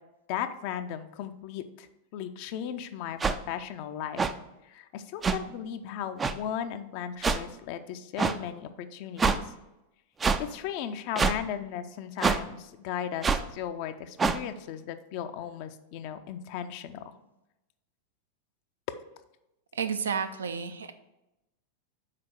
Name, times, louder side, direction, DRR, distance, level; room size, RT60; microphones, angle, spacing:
voice 1, 0.3-1.9 2.1-4.2 4.6-9.5 10.4-17.1, left 9 dB, 45° left, 9 dB, 0.5 m, -36 dB
sound 1, 3.2-3.3 4.2-4.3 5.2-5.4 6.2-6.3 7.2-7.4 8.2-8.3 9.2-9.4 10.2-10.4 11.2-11.4 12.2-12.4 13.2-13.4 14.2-14.4, right 5 dB, 15° right, 0.4 m, -25 dB
voice 2, 19.7-20.9, right 6 dB, 70° right, 9 dB, 0.6 m, -31 dB
5.8 x 4.3 x 6.2 m, 0.93 s
figure-of-eight pair, 90°, 0 cm